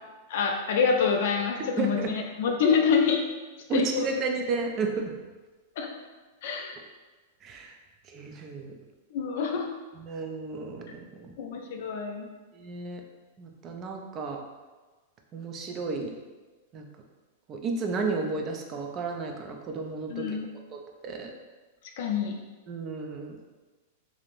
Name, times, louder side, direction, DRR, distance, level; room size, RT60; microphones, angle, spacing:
voice 1, 0.3-3.2 3.7-4.1 5.8-5.9 6.4-6.8 9.1-9.7 11.4-12.3 20.1-20.5 22.0-22.3, left 6 dB, 60° left, 3 dB, 0.3 m, -26 dB
voice 2, 1.8-2.1 3.7-5.1 7.4-7.7 8.1-8.8 10.0-10.9 11.2-11.3 12.5-13.0 13.4-14.4 15.3-16.1 16.7-16.8 17.5-20.4 20.7-21.3 22.7-23.4, right 4 dB, 25° right, 3 dB, 0.3 m, -32 dB
2.5 x 2.0 x 3.0 m, 1.3 s
supercardioid pair, 150°, 0 cm